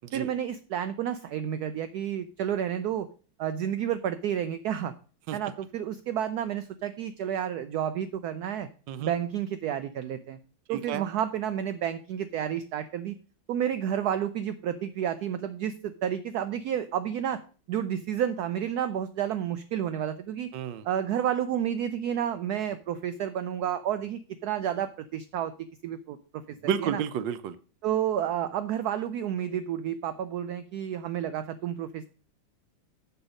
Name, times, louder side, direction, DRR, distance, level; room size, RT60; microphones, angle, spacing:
voice 1, 0.1-3.1 3.4-4.9 5.3-8.7 9.0-10.4 10.7-13.2 13.5-17.4 17.7-20.5 20.8-25.5 25.8-26.4 26.8-27.0 27.8-32.0, right 9 dB, 90° right, 11 dB, 0.8 m, -30 dB
voice 2, 10.7-11.0 20.5-20.8 26.6-27.5, right 8 dB, 75° right, 12 dB, 1.2 m, -30 dB
6.9 x 5.7 x 5.1 m, 0.39 s
omnidirectional pair, 2.2 m